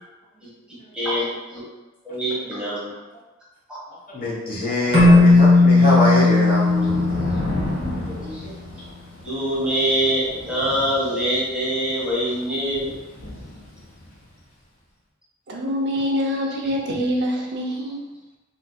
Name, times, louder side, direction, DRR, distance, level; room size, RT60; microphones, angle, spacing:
voice 1, 0.7-1.6 2.0-2.9 3.7-3.8 8.3-8.4 9.2-12.9, right 1 dB, 5° right, -9 dB, 1.2 m, -24 dB
voice 2, 4.1-7.1 8.1-8.5, left 1 dB, 45° left, -7 dB, 1.1 m, -24 dB
Keyboard (musical), 4.9-8.2, left 2 dB, 25° right, 0.8 m, -16 dB
Thunder / Rain, 5.9-14.2, left 1 dB, 70° left, 1.2 m, -34 dB
voice 3, 15.5-18.0, equal, 60° right, -1 dB, 0.6 m, -25 dB
3.8 x 2.7 x 2.3 m, 1.1 s
head